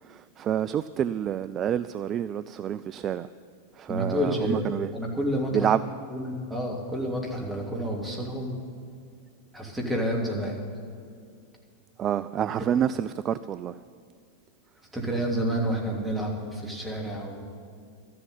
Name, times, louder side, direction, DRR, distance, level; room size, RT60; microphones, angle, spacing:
voice 1, 0.1-3.3 3.8-4.9 5.5-5.8 12.0-13.8, right 9 dB, 30° right, 14 dB, 0.3 m, -28 dB
voice 2, 3.9-5.7 6.1-8.5 9.5-10.6 12.6-12.7 14.9-17.5, equal, 10° right, -1 dB, 3.0 m, -29 dB
13.5 x 7.8 x 10.0 m, 2.3 s
figure-of-eight pair, 90°, 0 cm